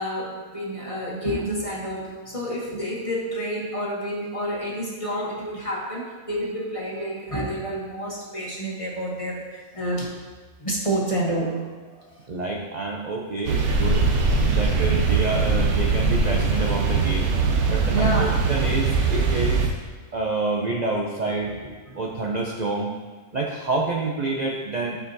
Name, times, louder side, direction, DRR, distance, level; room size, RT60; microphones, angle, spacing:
voice 1, 0.0-10.1 10.6-12.2 13.5-13.6 17.9-18.3 21.4-21.5 21.9-22.3, right 1 dB, 25° left, -3 dB, 1.1 m, -29 dB
voice 2, 12.3-14.1 14.4-17.3 17.7-19.7 20.1-21.5 22.0-22.9 23.3-25.0, right 3 dB, 55° right, -1 dB, 0.5 m, -27 dB
sound 1, 13.4-19.7, right 4 dB, 70° right, 1.3 m, -21 dB
12.0 x 4.8 x 2.7 m, 1.4 s
omnidirectional pair, 1.6 m